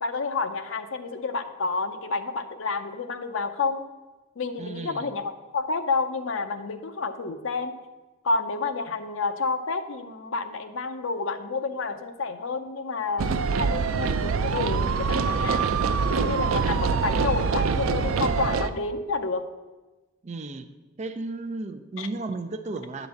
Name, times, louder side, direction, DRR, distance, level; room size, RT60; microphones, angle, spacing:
voice 1, 0.0-3.9 4.4-7.7 8.2-15.7 16.1-19.5 22.0-22.1, left 4 dB, 70° left, 8 dB, 0.7 m, -29 dB
voice 2, 4.6-5.1 20.2-20.7 21.0-23.1, right 3 dB, 35° right, 9 dB, 0.5 m, -34 dB
sound 1, 13.2-18.7, right 5 dB, 90° right, 0.4 m, -24 dB
9.6 x 3.9 x 7.1 m, 1.2 s
head